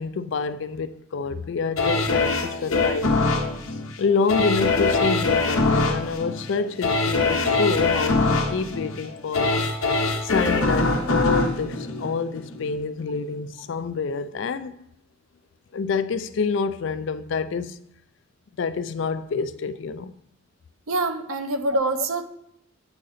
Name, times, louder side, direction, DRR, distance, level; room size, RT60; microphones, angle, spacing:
voice 1, 0.0-3.2 4.0-9.7 10.2-14.8 15.7-17.8 18.6-20.1, left 5 dB, 60° left, 0.4 m, -27 dB
sound 1, 1.8-12.7 13.2-13.3, left 3 dB, 85° left, 0.9 m, -23 dB
voice 2, 20.9-22.2, right 2 dB, 80° right, 0.7 m, -25 dB
8.8 x 3.8 x 4.1 m
head